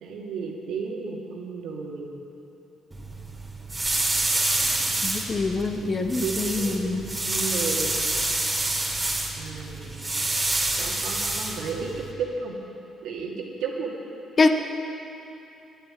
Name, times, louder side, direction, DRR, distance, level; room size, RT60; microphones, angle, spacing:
voice 1, 0.0-2.1 5.7-8.0 9.4-9.9 10.8-11.9 12.2-12.5 13.0-13.9, right 5 dB, 80° right, -1 dB, 2.1 m, -33 dB
sound 1, 2.9-12.1, right 2 dB, 20° right, 2.5 m, -28 dB
voice 2, 5.0-7.1 14.4-14.5, left 3 dB, 40° left, 6 dB, 1.0 m, -24 dB
11.5 x 8.9 x 9.7 m, 2.8 s
cardioid pair, 90°, 0 cm